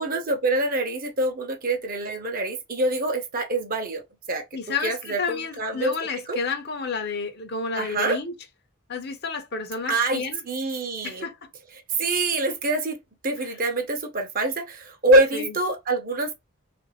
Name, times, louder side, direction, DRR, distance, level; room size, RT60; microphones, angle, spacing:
voice 1, 0.0-4.0 4.3-4.4 4.8-5.9 6.3-6.4 7.8-8.2 9.9-11.3 12.0-13.0 13.2-16.3, right 2 dB, 40° right, 0.8 m, -25 dB
voice 2, 4.5-8.3 8.9-10.4 11.0-11.4 15.3-15.5, left 4 dB, 50° left, 0.7 m, -30 dB
3.4 x 2.6 x 3.0 m
head